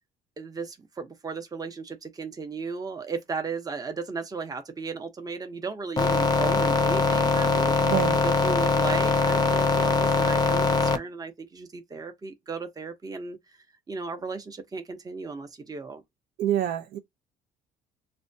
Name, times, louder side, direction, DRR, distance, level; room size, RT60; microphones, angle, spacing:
voice 1, 0.4-7.7 8.2-13.4 13.9-16.0, right 4 dB, 20° right, 0.8 m, -35 dB
sound 1, 6.0-11.0, left 3 dB, 25° left, 0.5 m, -22 dB
voice 2, 7.8-8.2 16.4-17.0, right 11 dB, 65° right, 0.6 m, -27 dB
5.9 x 2.2 x 2.7 m
cardioid pair, 110°, 17 cm